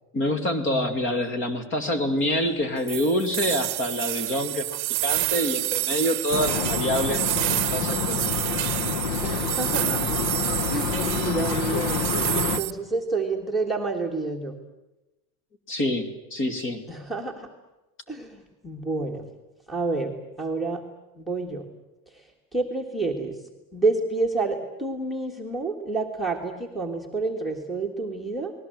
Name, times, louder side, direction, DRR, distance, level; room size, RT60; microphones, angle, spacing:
voice 1, 0.1-7.3 7.7-8.4 15.7-16.8, left 1 dB, 30° left, 10 dB, 2.6 m, -26 dB
sound 1, 2.9-12.7, right 26 dB, 85° right, 0.8 m, -28 dB
sound 2, 6.3-12.6, left 6 dB, 50° left, 1.4 m, -28 dB
voice 2, 9.2-10.2 10.7-14.6 16.9-17.5 18.1-19.2 19.7-20.8 21.2-21.7 22.5-23.4 23.7-28.5, right 3 dB, ahead, 6 dB, 1.6 m, -29 dB
30.0 x 20.0 x 7.9 m, 1.0 s
cardioid pair, 175°, 39 cm